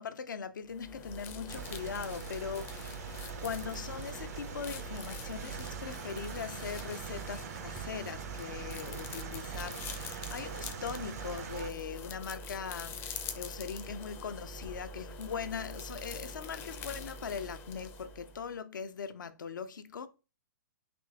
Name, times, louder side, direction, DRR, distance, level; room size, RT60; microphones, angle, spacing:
voice 1, 0.0-20.1, left 6 dB, 75° left, 0.6 m, -40 dB
sound 1, 0.7-18.5, left 2 dB, 20° left, 0.5 m, -45 dB
sound 2, 1.5-11.7, right 8 dB, 50° right, 0.4 m, -43 dB
3.7 x 2.8 x 3.5 m
hypercardioid pair, 125°, 11 cm